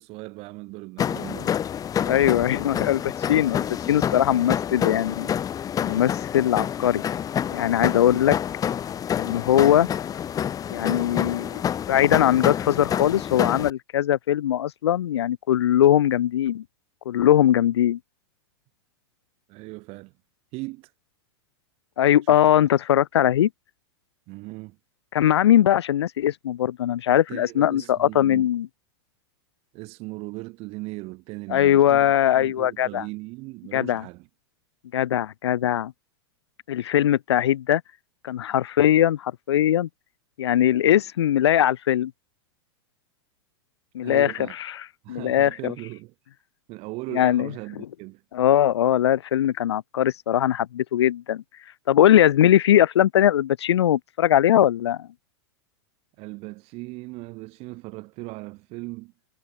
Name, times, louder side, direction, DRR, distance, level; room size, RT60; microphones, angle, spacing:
voice 1, 0.0-1.6 2.5-2.6 19.5-20.1 20.5-20.9 22.3-22.4 24.3-24.8 27.1-28.5 29.7-34.3 44.0-44.6 45.0-46.1 46.7-48.2 56.2-59.1, right 23 dB, 45° right, 6.4 m, -38 dB
sound 1, 1.0-13.7, left 9 dB, 25° left, 2.2 m, -28 dB
voice 2, 2.0-3.0 3.3-5.3 5.8-7.0 7.5-8.4 9.2-9.9 10.7-11.6 11.9-16.6 17.0-18.0 22.0-23.5 25.1-28.7 31.5-33.0 33.7-34.0 34.9-35.9 36.7-37.8 38.2-39.9 40.4-42.1 43.9-44.3 44.7-45.7 47.1-47.5 48.3-51.4 51.9-55.1, left 11 dB, 75° left, 3.1 m, -20 dB
hypercardioid pair, 115°, 14 cm